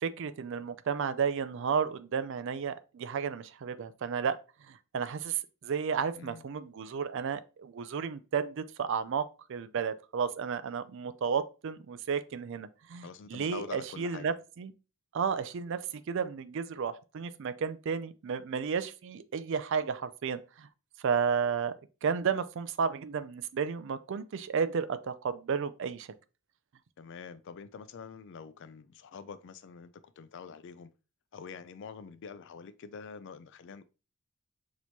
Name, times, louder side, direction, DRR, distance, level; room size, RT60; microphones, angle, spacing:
voice 1, 0.0-4.4 4.7-14.7 15.1-20.7 21.0-21.7 22.0-26.1, right 6 dB, 65° right, 0.4 m, -32 dB
voice 2, 13.0-14.4 27.0-30.9 31.3-33.8, left 6 dB, 60° left, 0.4 m, -46 dB
6.1 x 3.0 x 2.7 m
head